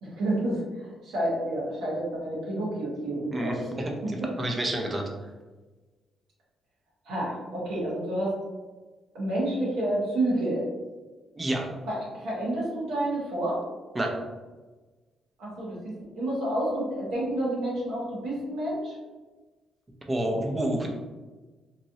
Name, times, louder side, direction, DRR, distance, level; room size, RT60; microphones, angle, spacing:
voice 1, 0.0-3.6 4.0-4.1 7.0-8.3 9.1-10.6 11.9-13.6 15.4-18.9, right 1 dB, 85° right, -7 dB, 1.1 m, -29 dB
voice 2, 3.3-5.1 11.4-11.7 13.9-14.2 20.1-20.9, right 1 dB, 25° right, 1 dB, 0.6 m, -29 dB
3.0 x 2.5 x 2.7 m, 1.3 s
cardioid pair, 90°, 0 cm